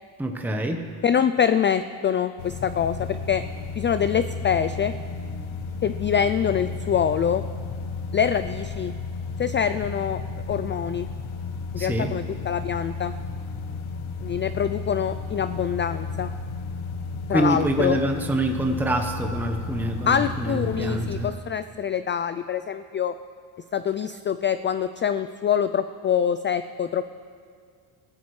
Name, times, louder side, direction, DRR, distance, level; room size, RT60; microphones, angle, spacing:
voice 1, 0.2-0.9 11.8-12.1 17.3-21.4, right 1 dB, 5° right, 3 dB, 1.0 m, -26 dB
voice 2, 1.0-3.4 3.8-4.9 5.8-7.4 8.1-8.9 9.4-10.2 10.5-11.1 11.7-13.1 14.2-16.3 17.3-18.0 20.1-23.1 23.7-27.0, left 8 dB, 25° left, 12 dB, 0.3 m, -25 dB
sound 1, 2.4-21.3, left 4 dB, 80° left, 1.1 m, -33 dB
21.5 x 15.5 x 3.2 m, 2.1 s
cardioid pair, 95°, 48 cm